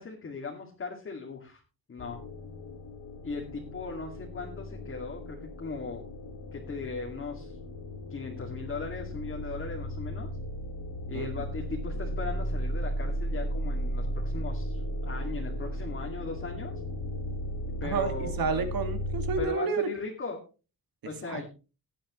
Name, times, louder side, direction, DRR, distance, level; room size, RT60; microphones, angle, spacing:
voice 1, 0.0-1.6 1.9-2.2 3.2-6.1 6.5-7.6 8.1-10.3 11.1-16.8 17.8-18.7 19.4-20.4 21.0-21.5, left 4 dB, 35° left, -1 dB, 2.2 m, -38 dB
sound 1, 2.0-19.4, equal, 75° left, 2.4 m, -35 dB
voice 2, 17.8-19.9 21.3-21.5, right 5 dB, 70° right, 8 dB, 2.1 m, -30 dB
17.5 x 9.9 x 3.1 m, 0.32 s
wide cardioid pair, 175°, 36 cm